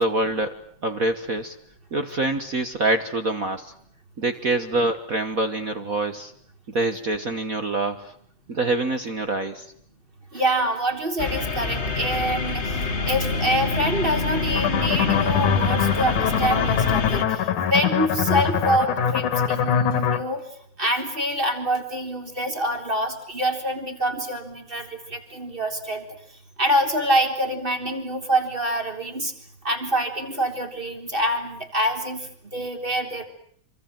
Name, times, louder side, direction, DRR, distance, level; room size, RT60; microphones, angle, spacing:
voice 1, 0.0-1.5 1.9-3.7 4.2-6.3 6.7-8.1 8.5-9.7, right 2 dB, 50° right, 9 dB, 1.0 m, -25 dB
voice 2, 10.3-20.4 20.8-26.0 26.6-29.3 29.6-33.2, right 1 dB, 15° right, 5 dB, 3.8 m, -26 dB
sound 1, 11.2-17.2, left 3 dB, 35° left, 1.1 m, -26 dB
sound 2, 14.6-20.2, left 8 dB, 75° left, 3.2 m, -23 dB
26.5 x 25.0 x 7.6 m, 0.64 s
omnidirectional pair, 3.6 m